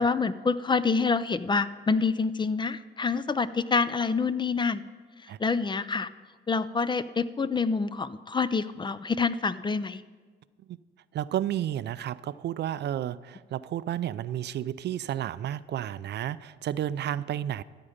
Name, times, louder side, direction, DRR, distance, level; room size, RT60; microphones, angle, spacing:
voice 1, 0.0-4.8 5.4-6.1 6.5-10.0, left 4 dB, 25° left, 15 dB, 0.5 m, -27 dB
voice 2, 11.1-17.6, right 11 dB, 60° right, 16 dB, 0.4 m, -32 dB
13.5 x 8.8 x 5.1 m, 1.5 s
cardioid pair, 90°, 20 cm